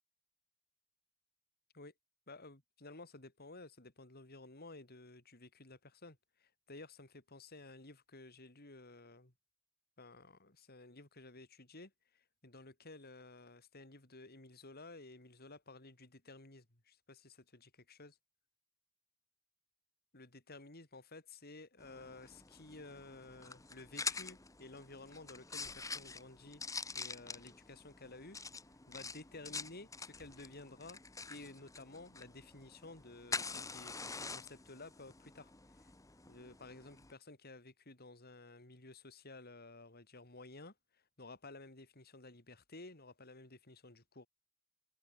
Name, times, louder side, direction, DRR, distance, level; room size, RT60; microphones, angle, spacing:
voice 1, 2.3-9.3 10.0-18.2 20.1-28.4 28.9-31.0 31.3-35.9 36.3-44.3, left 2 dB, 50° left, 3.8 m, -54 dB
sound 1, 21.8-37.1, left 4 dB, 15° left, 1.3 m, -46 dB
head